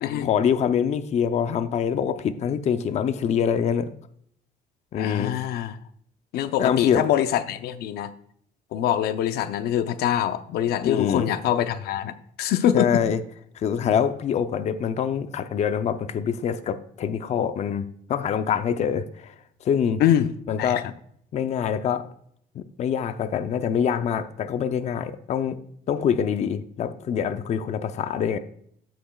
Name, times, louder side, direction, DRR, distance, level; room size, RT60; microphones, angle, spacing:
voice 1, 0.2-3.9 4.9-5.3 6.6-7.1 10.8-11.3 12.7-13.2 13.6-17.8 18.1-19.3 19.6-20.0 20.5-20.9 21.3-22.1 22.5-25.6 25.9-28.4, left 8 dB, 45° left, 10 dB, 0.6 m, -25 dB
voice 2, 5.0-5.8 6.3-8.1 8.7-13.0 20.0-20.3 20.6-20.8, left 10 dB, 85° left, 10 dB, 0.6 m, -24 dB
15.0 x 6.0 x 2.3 m, 0.67 s
cardioid pair, 155°, 16 cm